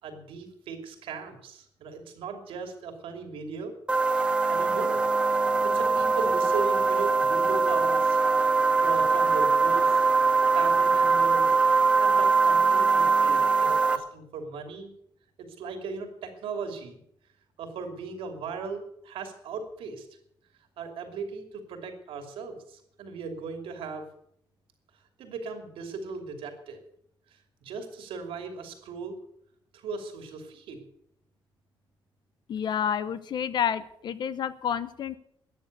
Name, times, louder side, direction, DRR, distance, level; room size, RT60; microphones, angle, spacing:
voice 1, 0.0-3.7 4.2-5.0 5.6-8.2 8.8-10.0 10.5-11.5 12.0-14.9 15.6-17.0 17.6-20.1 20.8-24.0 25.2-26.8 27.3-29.1 29.7-30.8, right 4 dB, 90° right, 5 dB, 2.8 m, -37 dB
sound 1, 3.9-14.0, right 4 dB, 10° right, 0.9 m, -22 dB
voice 2, 32.5-35.2, left 8 dB, 55° left, 15 dB, 0.9 m, -29 dB
14.0 x 9.6 x 8.0 m, 0.73 s
cardioid pair, 145°, 9 cm